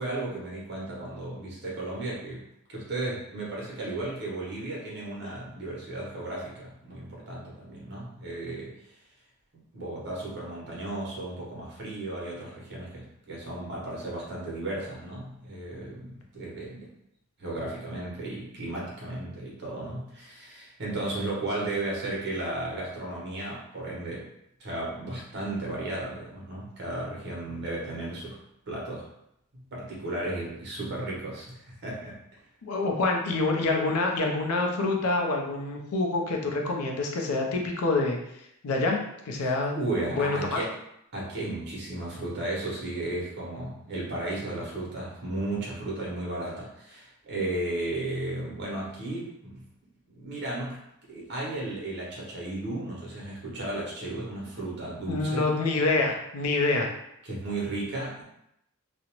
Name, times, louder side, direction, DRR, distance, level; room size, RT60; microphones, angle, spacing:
voice 1, 0.0-8.7 9.5-16.9 17.4-24.3 24.6-28.4 28.7-29.0 29.7-32.2 39.4-40.7 41.1-49.6 50.1-50.8 51.1-55.5 57.2-58.2, right 2 dB, 50° right, -4 dB, 0.9 m, -34 dB
voice 2, 32.6-38.2 38.6-39.0 39.3-39.8 40.2-40.6 55.1-56.9, left 3 dB, 85° left, 1 dB, 0.5 m, -26 dB
2.5 x 2.0 x 2.9 m, 0.80 s
head